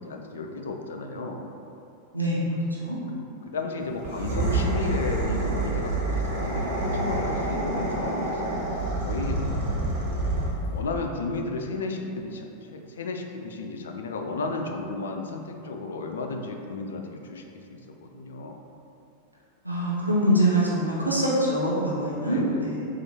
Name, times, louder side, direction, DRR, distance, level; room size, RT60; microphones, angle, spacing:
voice 1, 0.0-1.5 3.1-8.6 9.0-9.6 10.7-17.4 17.7-18.6 22.3-22.7, left 3 dB, 65° left, 3 dB, 0.4 m, -33 dB
sound 1, 4.0-10.8, right 2 dB, 55° right, 0.9 m, -27 dB
voice 2, 19.6-22.9, right 1 dB, 85° right, -6 dB, 0.6 m, -24 dB
4.2 x 2.5 x 4.2 m, 2.8 s
figure-of-eight pair, 90°, 0 cm